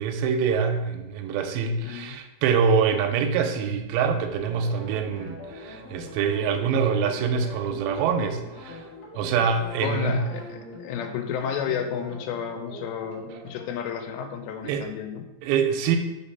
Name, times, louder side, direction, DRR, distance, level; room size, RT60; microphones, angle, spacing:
voice 1, 0.0-8.8 9.2-10.2 14.6-14.9 15.4-16.0, right 6 dB, 85° right, 7 dB, 2.7 m, -25 dB
voice 2, 1.8-2.2 9.8-15.2, left 8 dB, 80° left, 6 dB, 2.8 m, -32 dB
sound 1, 4.4-13.7, left 2 dB, 55° left, 1.5 m, -42 dB
5.8 x 4.1 x 5.4 m, 1.0 s
omnidirectional pair, 5.1 m